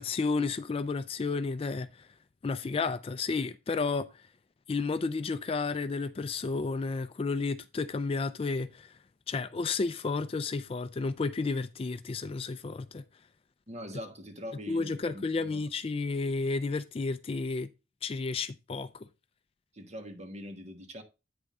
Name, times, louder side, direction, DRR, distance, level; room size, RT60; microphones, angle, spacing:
voice 1, 0.0-1.9 2.4-4.1 4.7-8.9 9.3-13.0 14.7-17.7 18.0-18.9, left 4 dB, 30° left, 0.3 m, -32 dB
voice 2, 13.7-15.6 19.7-21.0, equal, 35° right, 1.4 m, -43 dB
8.8 x 3.6 x 5.3 m
head